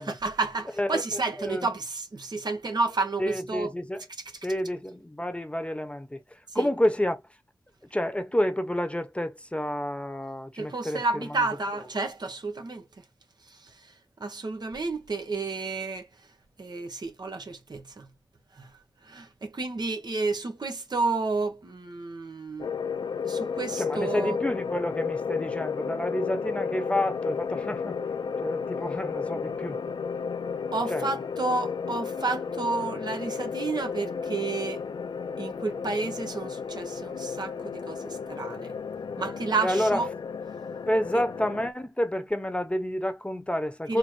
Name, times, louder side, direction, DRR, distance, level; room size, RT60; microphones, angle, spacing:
voice 1, 0.0-3.7 6.5-6.7 10.6-13.0 13.5-13.9 14.2-16.1 16.6-18.1 18.6-18.7 19.0-22.7 23.2-24.4 30.7-34.8 35.4-38.7 39.2-40.1 41.1-41.2 43.9-44.0, right 3 dB, 70° right, 1.3 m, -31 dB
voice 2, 0.8-1.7 3.2-4.1 4.4-7.2 7.9-11.4 23.8-28.0 28.4-29.8 30.9-31.1 39.6-40.0 40.9-44.0, left 1 dB, 15° left, 1.0 m, -29 dB
sound 1, 22.6-41.7, left 6 dB, 85° left, 0.4 m, -33 dB
4.4 x 2.1 x 4.7 m
cardioid pair, 45°, 8 cm